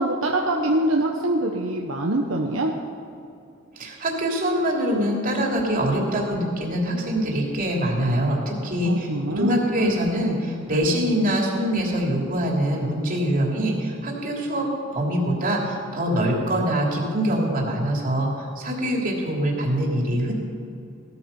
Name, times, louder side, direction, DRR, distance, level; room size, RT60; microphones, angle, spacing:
voice 1, 0.0-2.7 8.8-9.6, right 1 dB, 70° right, 0 dB, 1.1 m, -24 dB
voice 2, 3.8-14.7 14.9-20.3, right 1 dB, 40° right, -1 dB, 3.1 m, -24 dB
17.5 x 13.5 x 5.5 m, 2.6 s
head